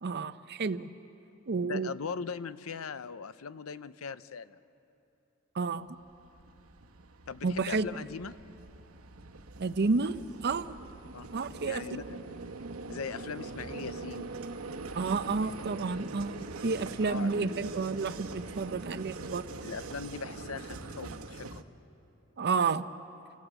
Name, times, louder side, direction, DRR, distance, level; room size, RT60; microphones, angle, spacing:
voice 1, 0.0-0.9 1.5-1.9 5.5-6.0 7.4-8.0 9.6-10.8 11.3-12.0 14.9-19.4 22.4-22.9, right 4 dB, 50° right, 13 dB, 0.6 m, -31 dB
voice 2, 1.6-4.6 7.3-8.4 11.1-11.3 11.6-12.4 12.9-14.3 17.0-17.4 19.6-21.6, left 5 dB, 75° left, 15 dB, 0.6 m, -40 dB
Vehicle, 6.0-21.6, right 3 dB, 80° right, 1.0 m, -43 dB
30.0 x 16.5 x 8.2 m, 2.9 s
head